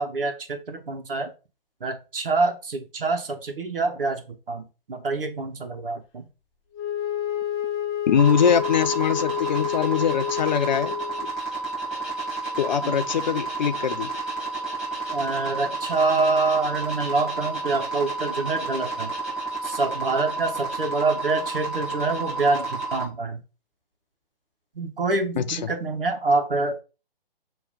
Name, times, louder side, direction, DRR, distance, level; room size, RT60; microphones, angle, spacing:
voice 1, 0.0-1.3 1.8-6.3 12.8-13.0 15.1-19.1 19.6-23.4 24.7-26.8, right 3 dB, 70° right, 1.6 m, -26 dB
Wind instrument woodwind instrument, 6.7-11.3, left 10 dB, 15° left, 0.8 m, -29 dB
voice 2, 8.1-11.0 12.6-14.1 25.4-25.6, left 8 dB, 50° left, 0.7 m, -22 dB
sound 1, 8.2-23.0, right 3 dB, ahead, 2.8 m, -31 dB
6.9 x 3.1 x 5.2 m
figure-of-eight pair, 135°, 29 cm